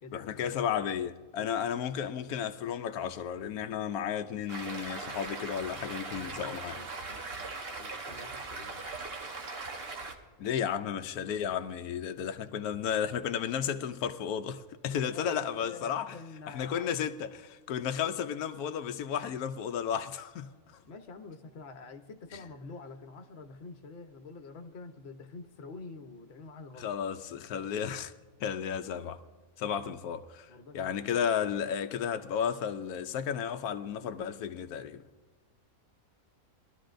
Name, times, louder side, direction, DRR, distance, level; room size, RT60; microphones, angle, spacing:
voice 1, 0.1-6.8 10.4-16.1 16.5-20.5 26.8-28.1 28.4-29.2 29.6-35.0, left 8 dB, 90° left, 1.1 m, -33 dB
Stream, 4.5-10.1, right 3 dB, 45° right, 1.3 m, -40 dB
voice 2, 6.8-8.8 14.9-16.9 20.8-26.9 27.6-27.8 30.5-30.9, left 3 dB, 50° left, 1.1 m, -47 dB
21.5 x 12.5 x 2.6 m
omnidirectional pair, 1.5 m